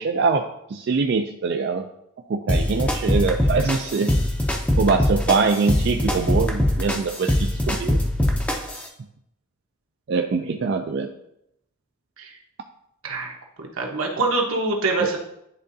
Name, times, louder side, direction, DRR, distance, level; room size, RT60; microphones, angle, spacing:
voice 1, 0.0-1.8 2.3-4.1 4.8-8.0 10.1-11.1 15.0-15.2, right 4 dB, 50° right, 4 dB, 0.3 m, -23 dB
sound 1, 2.5-8.9, left 1 dB, 5° left, 0.5 m, -23 dB
voice 2, 13.0-15.2, right 3 dB, 75° right, 0 dB, 1.2 m, -25 dB
10.5 x 3.7 x 2.7 m, 0.79 s
head